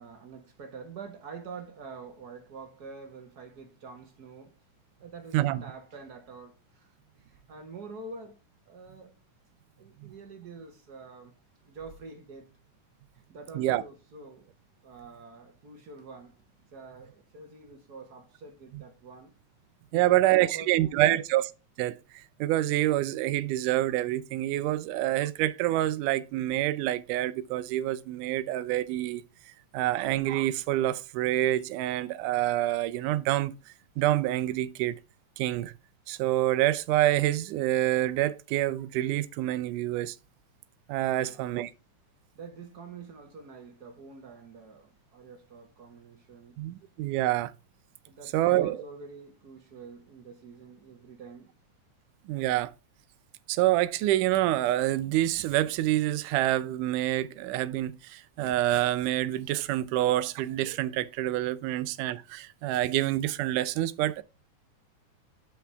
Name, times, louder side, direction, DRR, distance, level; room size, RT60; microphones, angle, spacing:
voice 1, 0.0-4.6 5.0-8.4 8.7-9.2 9.8-11.3 11.6-12.5 13.1-14.5 14.8-16.4 16.7-19.3 19.9-21.2 41.1-41.7 42.3-46.6 48.1-51.5, right 4 dB, 50° right, 1.2 m, -46 dB
voice 2, 19.9-21.4 21.8-29.2 29.7-33.5 34.0-35.0 35.4-35.7 36.1-40.2 40.9-41.7 46.6-47.5 48.3-48.8 52.3-52.7 53.5-64.2, right 14 dB, 90° right, 2.2 m, -27 dB
8.4 x 5.8 x 3.4 m
omnidirectional pair, 3.5 m